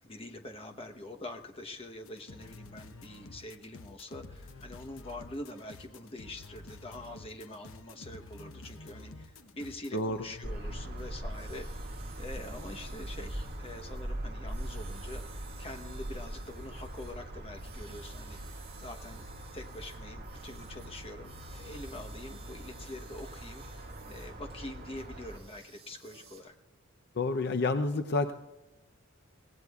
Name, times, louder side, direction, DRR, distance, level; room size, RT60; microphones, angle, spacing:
voice 1, 0.0-19.2 19.5-26.5, left 1 dB, 25° left, 4 dB, 1.0 m, -45 dB
sound 1, 2.0-11.1, left 2 dB, 70° left, 0.9 m, -50 dB
sound 2, 10.4-25.4, right 1 dB, 50° right, 1.9 m, -42 dB
sound 3, 10.9-26.4, right 5 dB, 30° right, 4.3 m, -57 dB
voice 2, 27.2-28.3, left 2 dB, 50° left, 8 dB, 0.6 m, -29 dB
23.5 x 17.5 x 2.4 m, 1.0 s
head